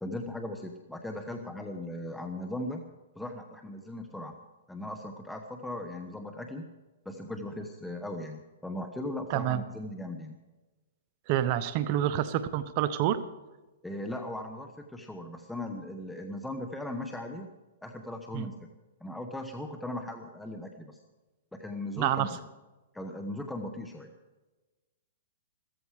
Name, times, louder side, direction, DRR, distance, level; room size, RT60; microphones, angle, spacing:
voice 1, 0.0-2.8 3.1-4.4 4.7-6.6 7.0-10.4 13.8-17.5 17.8-18.6 19.0-21.0 21.5-22.3 22.9-24.1, left 1 dB, 5° left, 3 dB, 1.2 m, -38 dB
voice 2, 9.3-9.6 11.3-13.2 18.3-18.5 22.0-22.3, right 12 dB, 45° right, 13 dB, 0.9 m, -28 dB
15.5 x 14.0 x 4.9 m, 1.2 s
hypercardioid pair, 135°, 0 cm